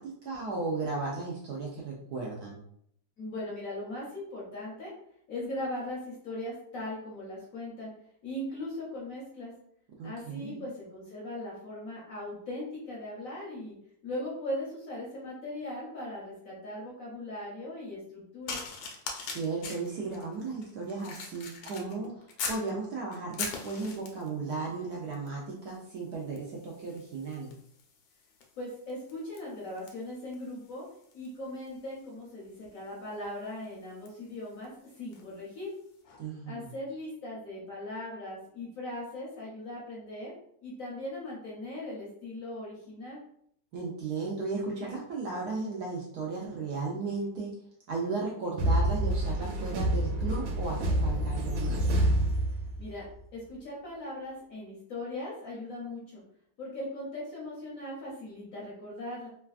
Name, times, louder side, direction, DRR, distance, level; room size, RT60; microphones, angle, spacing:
voice 1, 0.0-2.6 10.0-10.6 19.2-22.1 22.5-27.5 36.2-36.7 43.7-47.5 47.9-51.8, right 3 dB, 70° right, -2 dB, 0.9 m, -35 dB
voice 2, 3.2-4.9 5.3-7.9 8.2-9.5 10.0-13.7 14.0-18.6 28.6-30.9 31.1-35.7 36.4-40.3 40.6-43.2 52.8-53.1 53.3-56.2 56.6-59.3, left 1 dB, 60° left, -5 dB, 0.9 m, -39 dB
sound 1, 18.5-22.7 23.1-24.4 25.1-25.4 25.7-35.3 36.0-36.2, left 4 dB, 90° left, 1.4 m, -43 dB
sound 2, 48.6-53.0, right 1 dB, 90° right, 1.3 m, -27 dB
3.3 x 2.2 x 2.3 m, 0.69 s
omnidirectional pair, 2.0 m